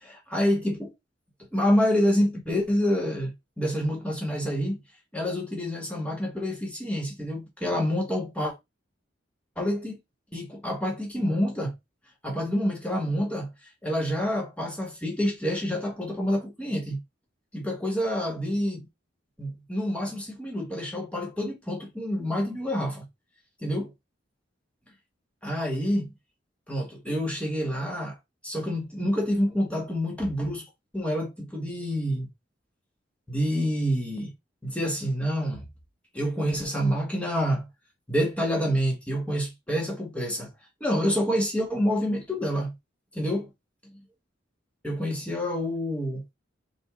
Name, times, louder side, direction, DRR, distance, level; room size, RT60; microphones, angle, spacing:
voice 1, 0.0-0.9 1.5-4.8 5.1-8.5 9.6-10.0 10.3-11.7 12.2-13.5 13.8-17.0 17.5-18.9 19.4-23.1 23.6-23.9 25.4-26.1 26.7-28.2 28.4-30.6 30.9-32.3 33.3-34.3 34.6-35.6 36.1-37.7 38.1-40.5 40.8-42.7 43.1-43.5 44.8-46.2, equal, 5° left, 1.7 m, -27 dB
5.4 x 2.7 x 3.7 m
head